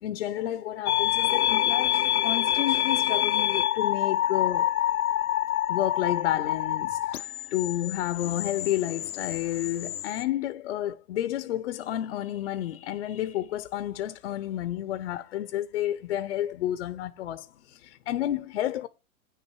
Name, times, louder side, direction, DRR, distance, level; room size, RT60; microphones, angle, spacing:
voice 1, 0.0-4.7 5.7-18.9, left 13 dB, 50° left, 0.8 m, -31 dB
sound 1, 0.9-10.2, left 12 dB, 85° left, 0.8 m, -27 dB
9.5 x 6.7 x 4.6 m
hypercardioid pair, 155°, 43 cm